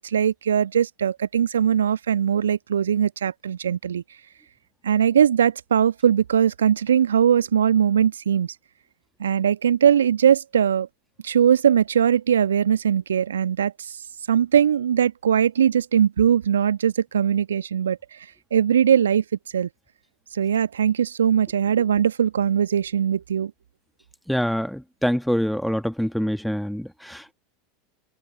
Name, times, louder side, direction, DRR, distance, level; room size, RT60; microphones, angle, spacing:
voice 1, 0.0-4.0 4.8-8.5 9.2-10.9 11.2-14.0 14.3-19.2 19.5-19.7 20.3-23.5, right 8 dB, 75° right, 1.2 m, -20 dB
voice 2, 24.3-27.3, equal, ahead, 1.8 m, -25 dB
open air
figure-of-eight pair, 80°, 0 cm